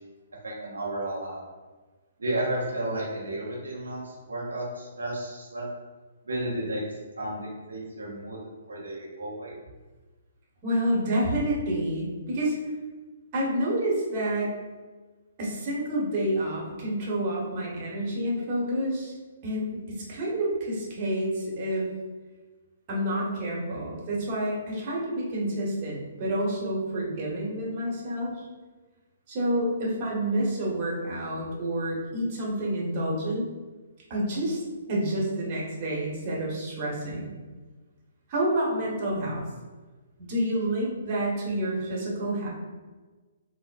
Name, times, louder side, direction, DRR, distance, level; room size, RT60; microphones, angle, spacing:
voice 1, 0.4-1.4 2.2-5.6 6.3-6.8 7.2-8.4 8.7-9.5, right 1 dB, 80° right, -5 dB, 0.6 m, -32 dB
voice 2, 10.6-12.6 13.3-14.6 15.4-19.1 19.4-21.9 22.9-28.5 29.3-33.4 34.1-34.6 34.9-37.3 38.3-39.4 40.2-42.5, right 1 dB, 40° right, -4 dB, 1.0 m, -28 dB
3.7 x 2.0 x 2.4 m, 1.3 s
figure-of-eight pair, 130°, 0 cm